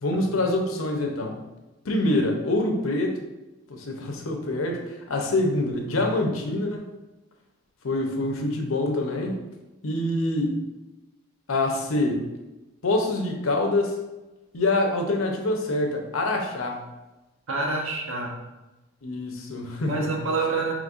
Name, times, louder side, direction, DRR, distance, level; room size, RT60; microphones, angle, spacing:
voice 1, 0.0-1.4 1.8-3.2 3.7-6.8 7.8-9.4 9.8-10.6 11.5-12.2 12.8-14.0 14.5-16.8 19.0-20.1, left 2 dB, 90° left, 2 dB, 0.7 m, -25 dB
voice 2, 17.5-18.4 19.9-20.7, right 3 dB, 85° right, 0 dB, 0.9 m, -27 dB
5.1 x 3.1 x 2.5 m, 1.0 s
head